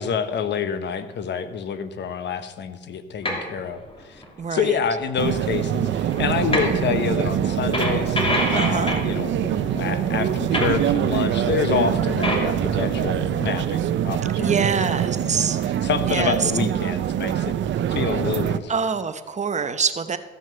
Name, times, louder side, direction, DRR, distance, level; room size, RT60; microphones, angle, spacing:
voice 1, 0.0-4.2 4.5-9.3 9.7-15.3 15.6-18.7, left 6 dB, 60° left, 11 dB, 1.0 m, -28 dB
sound 1, 3.2-3.6 3.9-4.2 4.8-4.9 5.1-9.1 10.1-11.0 11.8-12.0 12.2-12.5, left 1 dB, 25° left, 2.8 m, -27 dB
voice 2, 4.4-4.8 8.5-8.9 14.4-15.6 16.0-16.5 18.7-20.2, right 6 dB, 35° right, 11 dB, 0.8 m, -25 dB
sound 2, 5.2-18.6, right 10 dB, 70° right, 0.6 m, -24 dB
sound 3, 6.1-13.7, left 2 dB, 90° left, 2.2 m, -35 dB
14.5 x 6.2 x 6.8 m, 1.4 s
cardioid pair, 90°, 20 cm